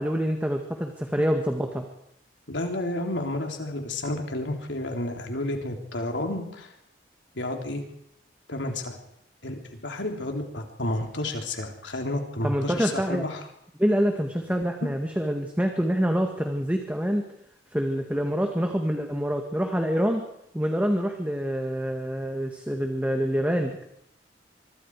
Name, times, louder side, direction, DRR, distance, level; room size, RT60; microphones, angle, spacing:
voice 1, 0.0-1.9 12.4-13.2 13.8-17.3 17.7-20.2 20.5-23.9, equal, 10° right, 3 dB, 1.8 m, -26 dB
voice 2, 2.5-6.7 7.4-7.8 8.5-9.0 9.4-13.4, left 1 dB, 80° left, 3 dB, 3.7 m, -31 dB
25.0 x 23.5 x 4.9 m, 0.76 s
head